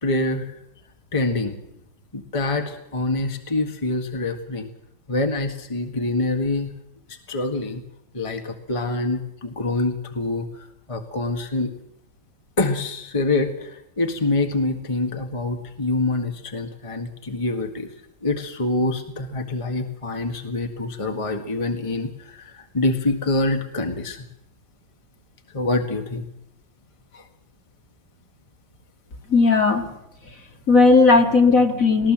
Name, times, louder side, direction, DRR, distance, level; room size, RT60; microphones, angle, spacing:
voice 1, 0.0-0.5 1.1-1.6 2.1-4.7 5.1-6.7 7.1-7.8 8.1-11.7 12.6-17.9 18.2-24.2 25.5-26.3 27.1-27.2, left 2 dB, 20° left, 5 dB, 1.8 m, -25 dB
voice 2, 29.3-29.9 30.7-32.1, left 3 dB, 45° left, 4 dB, 2.7 m, -16 dB
20.0 x 19.5 x 7.6 m, 0.80 s
omnidirectional pair, 2.0 m